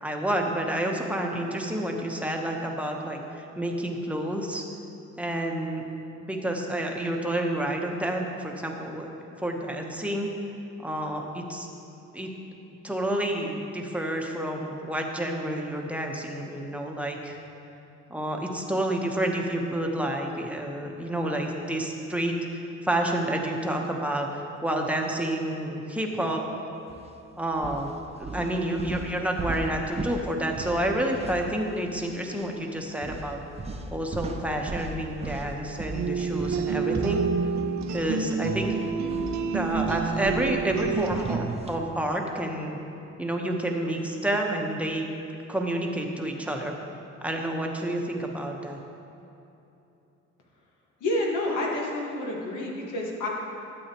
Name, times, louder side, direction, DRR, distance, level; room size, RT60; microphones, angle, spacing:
voice 1, 0.0-4.6 5.2-5.8 6.2-9.1 9.4-10.3 10.8-11.7 12.1-12.3 12.8-17.4 18.1-26.4 27.4-27.9 28.2-33.4 33.9-37.2 37.9-38.8 39.5-42.8 43.2-45.1 45.5-46.7 47.2-48.8, right 1 dB, 5° right, 1 dB, 1.0 m, -29 dB
sound 1, 26.9-27.1 27.5-32.0 32.3-32.5 33.0-38.1 38.4-41.9, right 2 dB, 20° right, 0.6 m, -38 dB
sound 2, 35.9-41.6, right 5 dB, 65° right, 0.7 m, -28 dB
voice 2, 51.0-53.3, left 1 dB, 80° left, -2 dB, 1.7 m, -29 dB
12.0 x 8.1 x 3.0 m, 2.9 s
cardioid pair, 90°, 30 cm